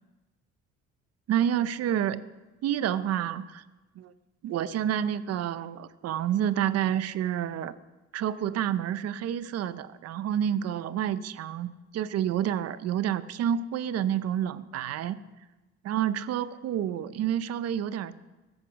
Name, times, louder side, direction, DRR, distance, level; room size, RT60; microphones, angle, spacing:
voice 1, 1.3-2.2 2.6-3.6 4.0-4.1 4.4-7.8 8.1-15.2 15.8-18.2, right 10 dB, 60° right, 15 dB, 0.6 m, -29 dB
15.0 x 8.1 x 5.9 m, 1.1 s
cardioid pair, 125°, 29 cm